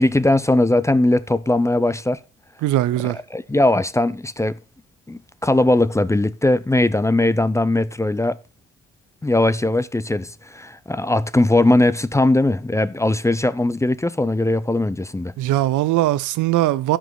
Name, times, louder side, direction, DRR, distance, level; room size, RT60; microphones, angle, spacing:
voice 1, 0.0-2.2 3.3-4.6 5.1-8.4 9.2-15.3, left 2 dB, 10° left, 0.5 m, -19 dB
voice 2, 2.6-3.2 15.4-17.0, right 15 dB, 80° right, 0.6 m, -20 dB
12.5 x 5.0 x 4.7 m
cardioid pair, 90°, 30 cm